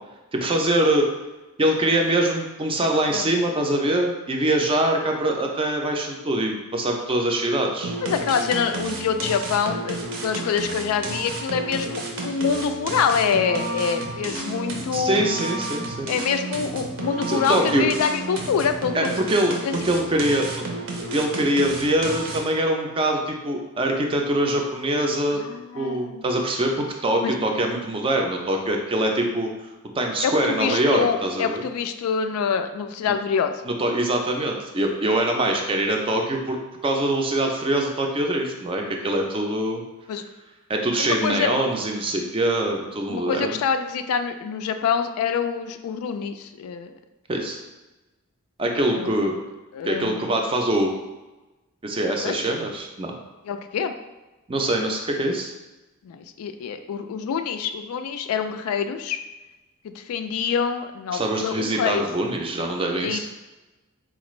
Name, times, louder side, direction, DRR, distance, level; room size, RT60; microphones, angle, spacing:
voice 1, 0.3-1.1 1.6-8.0 14.9-16.1 17.3-17.9 18.9-20.7 21.1-25.4 25.8-29.5 29.9-31.6 33.1-33.2 33.6-39.8 40.7-43.6 47.3-47.6 48.6-49.3 49.8-50.9 51.8-53.2 54.5-55.5 61.1-63.2, right 1 dB, 25° right, 2 dB, 0.4 m, -23 dB
sound 1, 7.8-22.6, right 2 dB, 65° right, 0.6 m, -32 dB
voice 2, 8.0-10.0 10.2-15.2 16.1-19.1 19.6-19.8 25.3-26.2 27.2-27.3 30.2-33.6 40.1-40.2 41.0-41.5 43.1-46.9 48.9-49.2 49.7-50.3 52.2-52.4 53.5-53.9 56.0-59.2 59.8-62.1 63.0-63.2, left 6 dB, 80° left, 11 dB, 0.3 m, -26 dB
4.1 x 2.4 x 3.0 m, 1.1 s
head